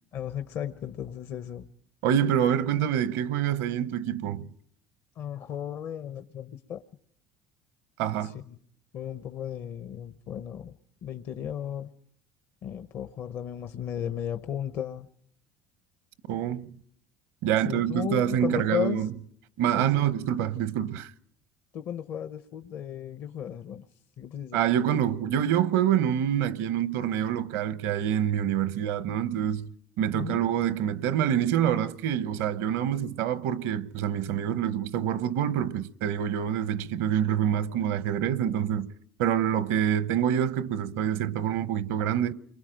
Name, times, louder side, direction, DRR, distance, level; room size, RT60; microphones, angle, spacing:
voice 1, 0.1-1.7 5.2-6.8 8.2-8.6 8.9-10.7 11.0-11.9 12.6-15.1 17.6-19.1 19.8-20.1 21.7-23.9 24.2-24.7 30.1-30.4, left 9 dB, 60° left, 0.9 m, -35 dB
voice 2, 2.0-4.5 8.0-8.3 16.3-16.7 17.4-19.1 19.6-21.1 24.5-29.7 30.0-38.9 39.2-42.3, right 10 dB, 80° right, 0.9 m, -26 dB
28.5 x 23.0 x 5.2 m
supercardioid pair, 90°, 5 cm